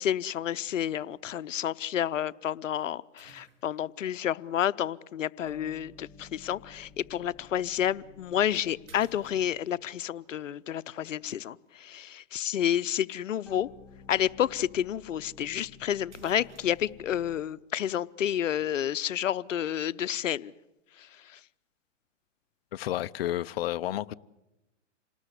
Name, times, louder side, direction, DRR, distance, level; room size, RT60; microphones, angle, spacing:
voice 1, 0.0-13.7 14.1-20.5 21.0-21.4, left 10 dB, 85° left, 0.8 m, -30 dB
sound 1, 0.7-1.0 1.6-1.7 3.2-4.0 5.5-5.6 7.7-7.9 8.4-8.5 8.9-9.9 14.1-14.2 14.4-14.5 15.6-15.7 16.1-17.0, right 4 dB, 70° right, 7.6 m, -56 dB
sound 2, 5.5-9.9 13.5-17.6, left 4 dB, ahead, 2.2 m, -54 dB
voice 2, 22.7-24.1, left 13 dB, 55° left, 0.8 m, -31 dB
28.0 x 19.5 x 8.3 m
hypercardioid pair, 140°, 37 cm